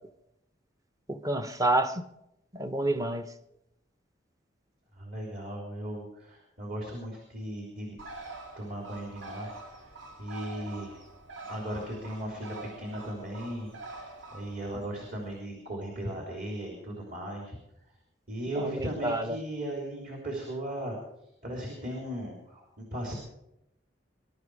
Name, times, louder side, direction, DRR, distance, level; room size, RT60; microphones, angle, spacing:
voice 1, 1.1-2.0 2.5-3.3 18.6-19.4, right 1 dB, 15° right, 9 dB, 0.9 m, -28 dB
voice 2, 4.9-8.0 8.6-9.9 10.2-11.0 11.5-14.0 14.3-17.6 18.3-21.0 21.4-23.2, right 1 dB, 45° right, 0 dB, 3.5 m, -37 dB
Bird, 8.0-15.4, right 2 dB, 75° right, 2.6 m, -45 dB
22.0 x 12.0 x 4.8 m, 0.84 s
head